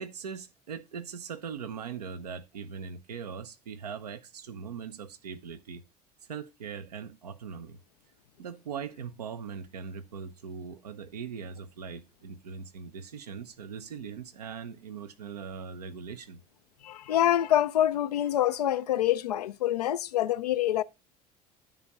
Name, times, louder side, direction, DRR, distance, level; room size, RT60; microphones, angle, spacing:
voice 1, 0.0-5.8 6.3-7.8 8.4-16.4, right 6 dB, 85° right, 0.8 m, -40 dB
voice 2, 16.8-20.8, left 12 dB, 85° left, 0.4 m, -26 dB
10.0 x 3.7 x 5.3 m
hypercardioid pair, 65°, 20 cm